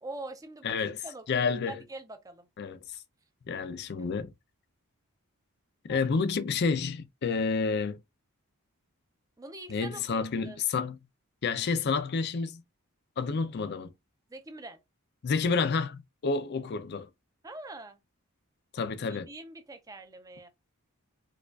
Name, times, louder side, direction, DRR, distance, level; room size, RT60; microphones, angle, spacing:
voice 1, 0.0-2.5 4.0-4.1 5.9-6.1 9.4-10.6 14.3-14.8 17.4-18.0 19.1-20.5, right 2 dB, 15° right, 0.5 m, -44 dB
voice 2, 0.6-1.0 1.3-1.8 2.6-2.8 3.5-4.3 5.9-8.0 9.7-11.0 11.4-12.6 13.2-13.9 15.2-17.1 18.7-19.3, left 4 dB, 50° left, 0.4 m, -29 dB
4.7 x 2.3 x 2.3 m
head